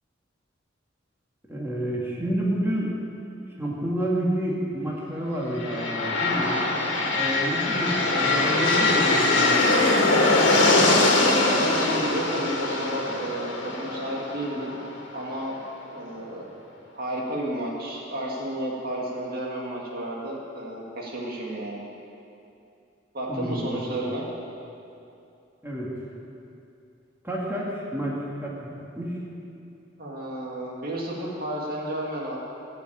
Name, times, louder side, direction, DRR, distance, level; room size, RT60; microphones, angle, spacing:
voice 1, 1.5-2.9 3.6-6.6 7.1-9.6 23.3-23.8 25.6-25.9 27.2-28.7 29.0-29.2, equal, 15° right, -5 dB, 2.1 m, -29 dB
sound 1, 5.5-15.3, left 2 dB, 85° left, 1.9 m, -22 dB
voice 2, 8.2-8.6 11.4-14.8 15.1-15.6 15.8-16.6 16.9-21.8 23.1-24.3 30.0-32.4, right 1 dB, 50° right, -3 dB, 2.1 m, -32 dB
16.0 x 6.1 x 8.7 m, 2.7 s
head